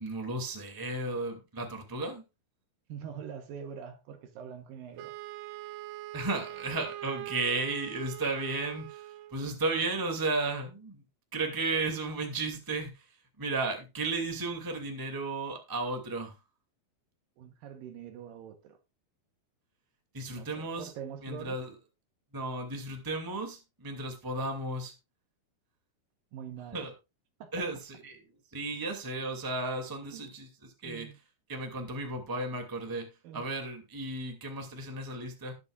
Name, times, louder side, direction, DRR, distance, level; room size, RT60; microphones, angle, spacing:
voice 1, 0.0-2.2 6.1-11.0 11.3-13.0 13.4-16.3 20.1-20.9 21.2-21.7 22.3-24.9 26.7-26.9 27.5-28.2 28.5-31.1 31.5-35.5, right 2 dB, 10° right, 1.4 m, -34 dB
voice 2, 2.9-5.1 17.4-18.8 20.3-21.6 26.3-26.8 27.4-27.6 30.1-30.2 30.8-31.2 33.2-33.4, right 8 dB, 75° right, 2.6 m, -44 dB
Wind instrument woodwind instrument, 5.0-9.4, right 15 dB, 90° right, 2.7 m, -43 dB
19.5 x 6.9 x 2.4 m
omnidirectional pair, 4.4 m